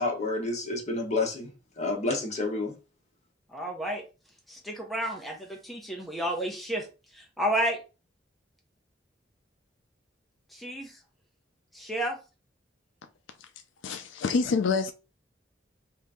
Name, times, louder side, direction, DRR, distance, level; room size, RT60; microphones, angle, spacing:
voice 1, 0.0-1.5 1.8-2.7, left 2 dB, 40° left, 1.0 m, -29 dB
voice 2, 3.5-4.0 4.5-6.9 7.1-7.8 10.5-11.0 11.7-12.2, right 1 dB, ahead, 0.7 m, -31 dB
voice 3, 13.8-14.9, left 4 dB, 80° left, 0.4 m, -26 dB
2.8 x 2.6 x 3.5 m
head